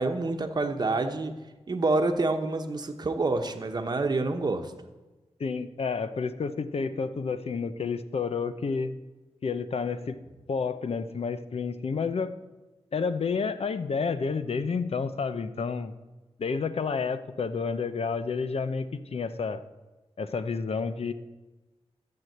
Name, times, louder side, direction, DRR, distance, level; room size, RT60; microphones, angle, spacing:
voice 1, 0.0-1.3 1.7-4.7, right 3 dB, 35° right, 5 dB, 1.0 m, -27 dB
voice 2, 5.4-8.9 9.4-10.2 10.5-12.3 12.9-15.9 16.4-19.6 20.2-21.1, left 5 dB, 65° left, 12 dB, 0.8 m, -30 dB
12.0 x 7.8 x 7.9 m, 1.2 s
wide cardioid pair, 135°, 11 cm